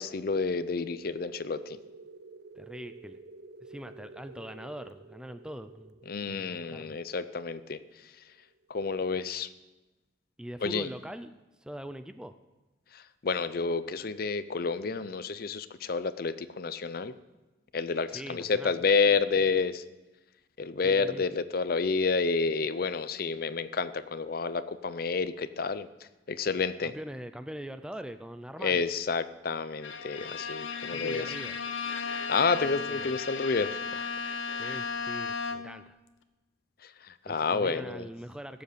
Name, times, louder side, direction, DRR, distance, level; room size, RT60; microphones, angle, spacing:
voice 1, 0.0-1.8 6.1-8.1 8.7-9.5 10.6-10.9 12.9-17.1 17.7-19.8 20.6-25.9 26.3-26.9 28.6-31.3 32.3-34.1 36.8-38.1, left 4 dB, 50° left, 14 dB, 0.5 m, -29 dB
sound 1, 0.6-8.9, right 3 dB, 55° right, 0.6 m, -51 dB
voice 2, 2.6-3.2 3.6-6.0 6.3-7.0 10.4-11.3 11.6-12.3 18.1-18.7 20.8-21.2 26.8-28.8 30.9-31.6 32.9-33.1 34.6-36.0 37.3-38.6, right 1 dB, 5° right, 10 dB, 0.4 m, -42 dB
Bowed string instrument, 29.8-35.9, left 5 dB, 80° left, 0.9 m, -35 dB
15.5 x 8.0 x 6.7 m, 1.1 s
head